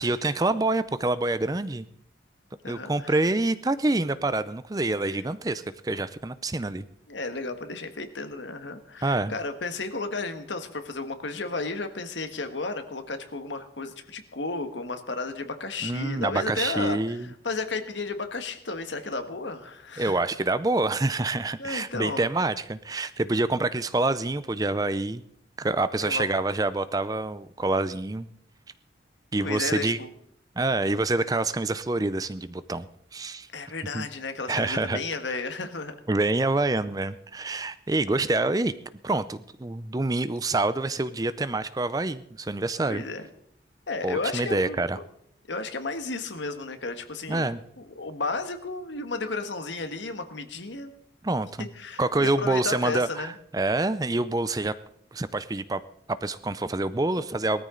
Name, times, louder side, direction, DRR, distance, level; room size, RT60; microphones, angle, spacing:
voice 1, 0.0-1.8 2.7-6.8 9.0-9.3 15.8-17.3 20.0-25.2 25.6-28.3 29.3-30.0 30.6-32.9 33.1-33.5 33.9-34.1 34.5-35.0 36.1-38.7 39.0-43.0 44.0-45.0 47.3-47.6 51.2-51.7 52.0-54.7 55.1-55.8 56.1-57.6, right 2 dB, 20° right, 14 dB, 0.5 m, -26 dB
voice 2, 2.6-3.1 7.1-20.2 21.6-22.3 26.0-26.3 29.4-30.1 33.5-35.9 42.8-43.3 43.9-45.0 45.5-47.5 47.8-50.9 51.6-53.4, left 3 dB, 80° left, 8 dB, 1.5 m, -33 dB
19.5 x 13.5 x 3.9 m, 0.70 s
head